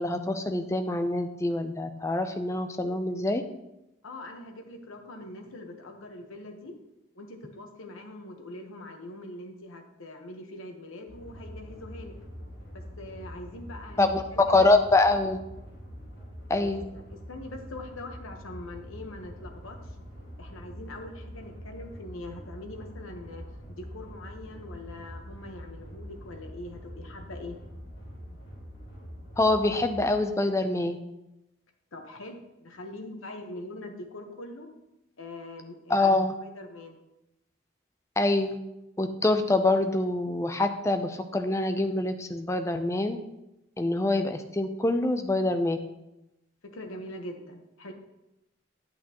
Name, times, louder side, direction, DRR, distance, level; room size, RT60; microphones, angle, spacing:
voice 1, 0.0-3.4 14.0-15.4 16.5-16.8 29.4-31.0 35.9-36.3 38.2-38.6 39.0-43.2 43.8-45.8, left 2 dB, 15° left, 7 dB, 0.5 m, -25 dB
voice 2, 4.0-6.8 7.1-12.1 12.7-14.7 16.5-16.8 17.1-20.0 20.4-27.6 31.9-34.7 35.2-37.0 46.6-47.9, left 1 dB, 80° left, 4 dB, 1.1 m, -43 dB
sound 1, 11.1-30.2, equal, 65° left, 3.3 m, -44 dB
8.7 x 8.3 x 2.9 m, 0.91 s
head